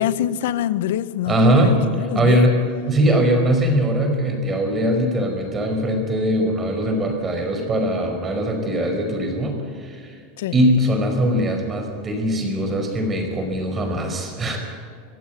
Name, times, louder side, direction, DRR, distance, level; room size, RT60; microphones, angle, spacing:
voice 1, 0.0-2.5 10.4-10.6, left 11 dB, 80° left, 0.9 m, -25 dB
voice 2, 1.3-2.6 2.9-10.2 10.5-14.6, equal, 20° right, 4.9 m, -21 dB
25.0 x 15.5 x 8.2 m
supercardioid pair, 140°, 0 cm